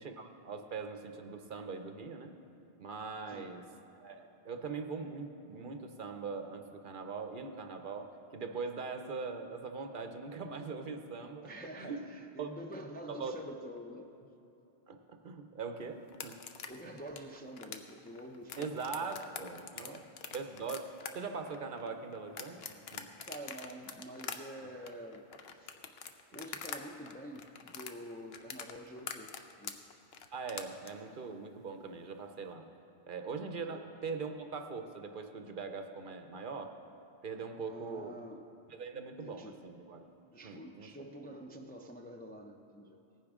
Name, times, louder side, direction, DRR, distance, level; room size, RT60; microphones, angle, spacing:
voice 1, 0.0-2.3 2.8-3.6 4.0-11.5 11.8-12.0 12.4-12.5 13.1-13.4 14.9-16.4 16.8-16.9 18.6-19.9 20.3-20.9 21.1-22.6 22.9-23.1 30.3-32.6 33.1-36.7 37.2-38.1 38.7-40.0 40.4-40.9, right 4 dB, 55° right, 6 dB, 0.8 m, -41 dB
voice 2, 11.4-14.3 16.7-20.1 23.2-25.3 25.5-25.7 26.3-29.8 33.7-33.9 37.7-38.5 39.2-39.6 40.3-43.0, equal, 15° left, 2 dB, 0.4 m, -47 dB
sound 1, 16.1-26.8 27.1-30.9, left 7 dB, 65° left, 0.9 m, -44 dB
17.0 x 9.9 x 3.6 m, 3.0 s
omnidirectional pair, 1.1 m